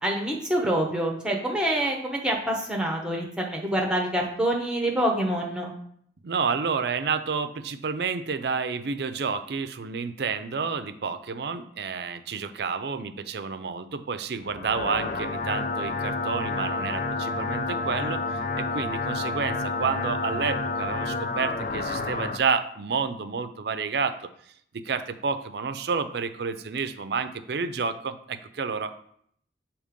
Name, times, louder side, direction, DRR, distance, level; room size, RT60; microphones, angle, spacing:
voice 1, 0.0-5.7, right 1 dB, 5° right, 0 dB, 0.9 m, -26 dB
voice 2, 6.2-24.2 24.7-28.9, right 5 dB, 60° right, 11 dB, 0.5 m, -30 dB
sound 1, 14.4-22.4, left 3 dB, 45° left, 0.4 m, -29 dB
6.5 x 2.9 x 5.1 m, 0.65 s
head